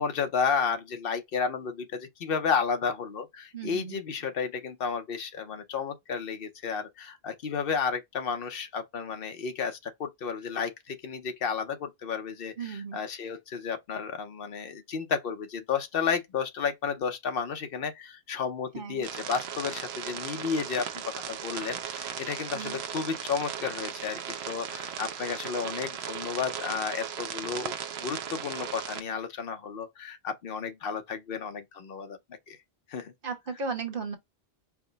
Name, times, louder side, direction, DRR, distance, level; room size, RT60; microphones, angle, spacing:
voice 1, 0.0-24.2 24.5-27.7 28.0-32.2 32.5-32.6 32.9-33.1, left 6 dB, 65° left, 0.9 m, -32 dB
voice 2, 3.5-4.0 12.6-13.0 18.7-19.1 22.5-22.8 33.2-34.2, right 5 dB, 60° right, 1.1 m, -35 dB
sound 1, 19.0-29.0, right 8 dB, 85° right, 0.9 m, -37 dB
4.7 x 2.0 x 3.9 m
omnidirectional pair, 1.1 m